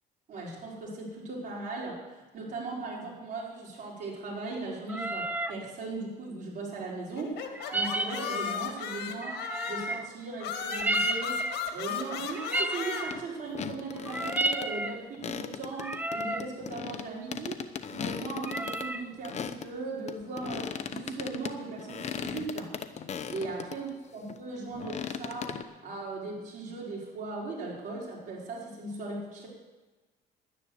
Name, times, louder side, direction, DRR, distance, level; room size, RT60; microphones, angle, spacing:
voice 1, 0.3-7.4 7.7-22.7 23.3-29.5, right 3 dB, 50° right, -4 dB, 5.2 m, -38 dB
sound 1, 4.9-5.6 7.5-8.6 9.2-10.1 10.7-11.7 12.3-13.2 14.0-15.0 15.7-16.5 18.4-19.1, right 2 dB, 10° right, 0.7 m, -32 dB
sound 2, 7.2-10.0 10.4-13.0, left 7 dB, 75° left, 1.7 m, -35 dB
sound 3, 13.1-13.2 13.5-14.7 15.1-19.7 20.1-23.8 24.3-25.6, left 7 dB, 40° left, 0.9 m, -37 dB
11.0 x 10.0 x 8.2 m, 1.2 s
cardioid pair, 110°, 17 cm